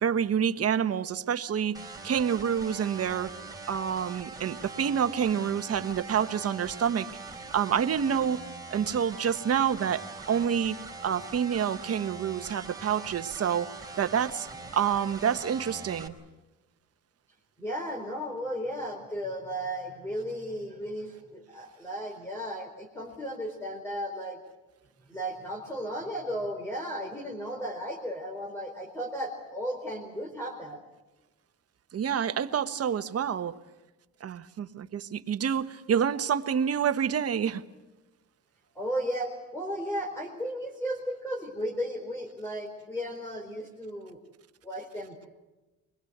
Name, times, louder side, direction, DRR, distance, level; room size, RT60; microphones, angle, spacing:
voice 1, 0.0-1.8 2.0-3.3 3.7-7.1 7.4-8.4 8.7-13.7 14.0-14.5 14.7-16.2 31.9-33.6 34.2-37.6, right 8 dB, 50° right, 9 dB, 1.3 m, -28 dB
sound 1, 1.7-16.1, right 3 dB, 10° right, 3.9 m, -43 dB
voice 2, 17.6-24.4 25.1-30.8 38.7-44.2 44.6-45.3, equal, 10° left, 1 dB, 4.3 m, -35 dB
25.0 x 21.0 x 8.1 m, 1.1 s
cardioid pair, 90°, 30 cm